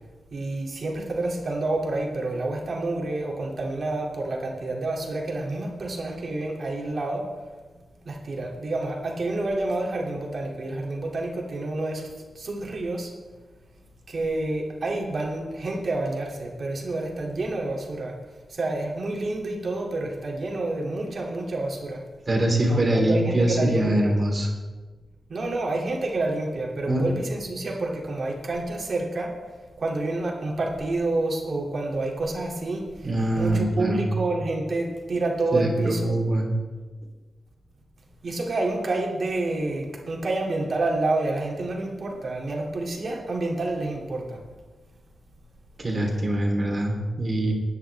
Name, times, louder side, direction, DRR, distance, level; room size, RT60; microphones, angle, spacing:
voice 1, 0.3-7.3 8.1-12.1 12.4-13.1 14.1-18.2 18.5-22.0 22.7-24.2 25.3-29.3 29.8-36.2 38.2-44.4, right 2 dB, 55° right, 0 dB, 2.5 m, -28 dB
voice 2, 22.3-24.5 26.9-27.0 33.0-34.0 35.5-36.5 45.8-47.5, right 1 dB, 30° right, 0 dB, 3.3 m, -23 dB
19.5 x 9.7 x 3.4 m, 1.3 s
wide cardioid pair, 135°, 0 cm